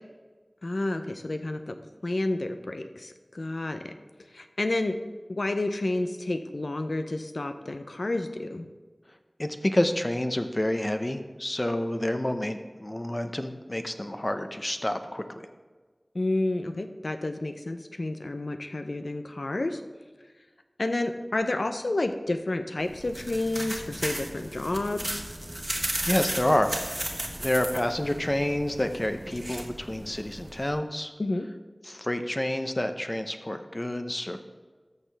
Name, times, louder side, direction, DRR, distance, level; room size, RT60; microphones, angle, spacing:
voice 1, 0.6-1.8 2.0-3.9 4.3-5.0 5.4-8.7 16.1-19.8 20.8-25.2 31.2-31.5, left 2 dB, 85° left, 7 dB, 0.6 m, -30 dB
voice 2, 9.4-15.2 26.1-27.0 27.4-31.1 31.8-34.4, left 1 dB, 35° left, 7 dB, 0.7 m, -28 dB
sound 1, 22.8-30.7, right 1 dB, 35° right, 1.4 m, -35 dB
13.5 x 6.5 x 3.4 m, 1.4 s
wide cardioid pair, 40°, 0 cm